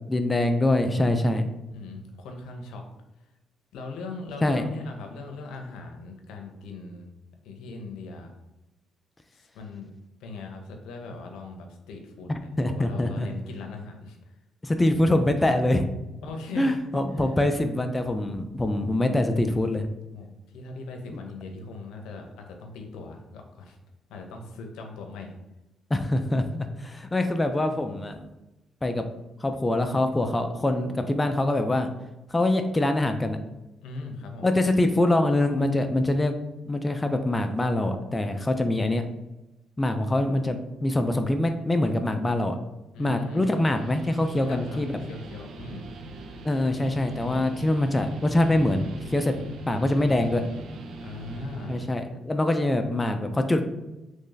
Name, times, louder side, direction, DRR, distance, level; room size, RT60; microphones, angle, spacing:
voice 1, 0.1-1.4 4.4-4.6 12.3-13.3 14.6-15.9 16.6-19.9 25.9-28.3 28.8-29.0 29.4-31.9 32.3-33.4 34.4-36.3 36.6-39.0 39.8-42.6 43.0-45.0 46.4-49.3 49.7-50.4 51.7-53.6, left 1 dB, 15° left, 6 dB, 0.3 m, -24 dB
voice 2, 1.7-2.8 3.7-7.1 7.4-8.4 9.3-9.9 10.2-14.2 16.2-16.8 17.2-17.3 20.1-23.8 24.1-25.4 33.8-34.5 42.9-43.5 44.3-45.9 49.3-50.1 51.0-51.8, left 3 dB, 90° left, 3 dB, 0.6 m, -40 dB
Guitar, 43.3-51.9, right 3 dB, 65° right, 0.4 m, -41 dB
3.1 x 2.6 x 3.8 m, 0.97 s
cardioid pair, 90°, 0 cm